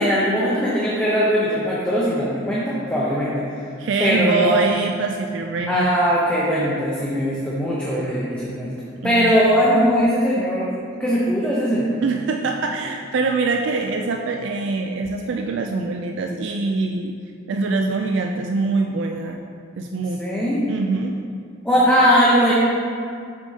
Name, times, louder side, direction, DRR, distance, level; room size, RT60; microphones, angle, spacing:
voice 1, 0.0-3.4 4.0-4.7 5.7-8.7 9.0-12.0 20.2-20.6 21.6-22.5, equal, 5° left, -7 dB, 0.7 m, -20 dB
voice 2, 3.8-5.9 9.0-9.4 12.0-17.1 17.5-19.4 19.8-20.2 20.7-21.2, right 3 dB, 60° right, 3 dB, 0.3 m, -24 dB
7.1 x 6.1 x 2.8 m, 2.3 s
head